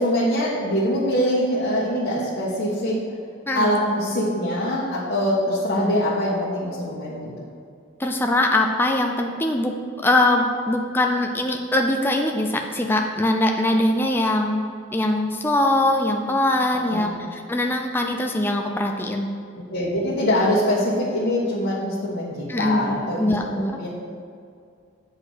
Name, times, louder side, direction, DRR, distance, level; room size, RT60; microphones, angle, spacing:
voice 1, 0.0-3.0 3.5-7.5 16.7-17.1 19.7-23.9, equal, 55° left, -8 dB, 1.3 m, -23 dB
voice 2, 8.0-9.7 10.0-14.7 14.9-19.3 22.5-23.8, left 1 dB, 10° left, 2 dB, 0.4 m, -22 dB
8.3 x 4.8 x 6.3 m, 2.3 s
head